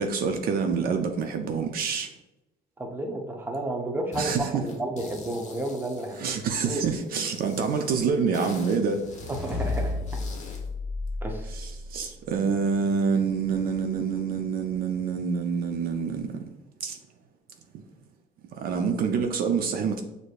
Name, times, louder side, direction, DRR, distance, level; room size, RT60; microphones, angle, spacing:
voice 1, 0.0-2.1 4.2-4.6 6.1-9.1 11.4-16.5 16.8-17.0 18.5-20.0, right 5 dB, 60° right, 5 dB, 0.5 m, -27 dB
voice 2, 2.8-6.2 6.6-6.8 9.3-10.0 11.2-11.4, right 1 dB, 10° right, 2 dB, 0.7 m, -31 dB
sound 1, 4.1-4.4 4.7-6.8 7.3-10.7, left 3 dB, 45° left, 0.9 m, -43 dB
sound 2, 8.8-12.1, left 2 dB, 30° right, 1.4 m, -32 dB
6.2 x 2.7 x 2.4 m, 0.98 s
cardioid pair, 110°, 17 cm